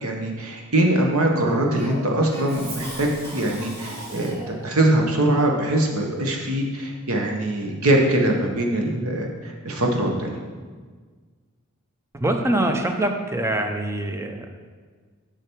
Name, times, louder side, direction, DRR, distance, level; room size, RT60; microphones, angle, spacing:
voice 1, 0.0-4.4 4.6-10.4, right 1 dB, 70° right, 1 dB, 1.1 m, -22 dB
Cough, 1.7-4.7, right 1 dB, 45° right, 2.4 m, -37 dB
voice 2, 12.1-14.5, right 1 dB, 10° right, 4 dB, 0.6 m, -24 dB
6.7 x 5.9 x 4.5 m, 1.5 s
head